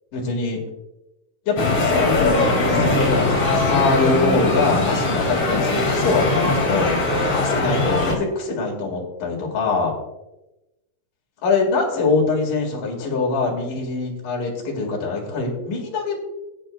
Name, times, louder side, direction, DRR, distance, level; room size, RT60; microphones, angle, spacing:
voice 1, 0.1-0.6 1.5-2.4 2.7-7.0 7.3-9.9 11.4-16.2, left 3 dB, 70° left, -1 dB, 3.6 m, -23 dB
sound 1, 1.6-8.2, left 2 dB, 40° left, 2.8 m, -20 dB
17.5 x 8.9 x 2.3 m, 0.98 s
omnidirectional pair, 4.0 m